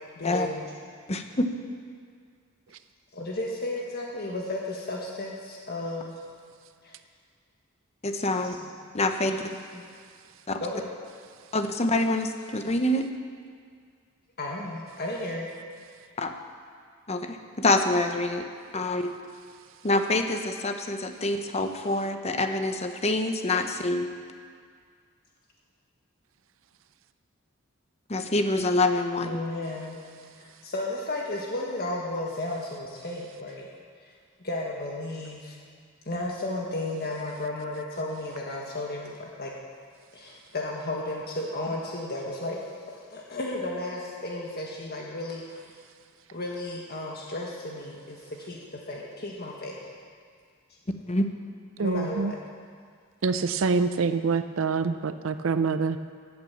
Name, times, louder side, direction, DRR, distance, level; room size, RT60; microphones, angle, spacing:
voice 1, 0.2-0.6 3.1-6.1 6.8-6.9 8.3-8.7 9.3-9.4 9.7-9.8 10.6-10.9 14.4-15.5 29.2-30.0 30.4-33.7 34.4-35.6 36.1-39.5 40.1-45.6 46.3-48.6 48.9-49.8 51.8-52.4, left 2 dB, 50° left, -2 dB, 1.6 m, -34 dB
voice 2, 1.1-1.5 8.0-8.6 8.9-9.3 10.5-10.6 11.5-13.1 16.2-16.3 17.1-18.4 18.7-19.1 19.8-24.1 28.1-29.4 51.1-51.3, left 2 dB, 30° left, 6 dB, 1.0 m, -26 dB
voice 3, 51.8-52.3 53.2-56.0, right 4 dB, 75° right, 11 dB, 0.5 m, -26 dB
16.0 x 8.8 x 7.2 m, 2.1 s
head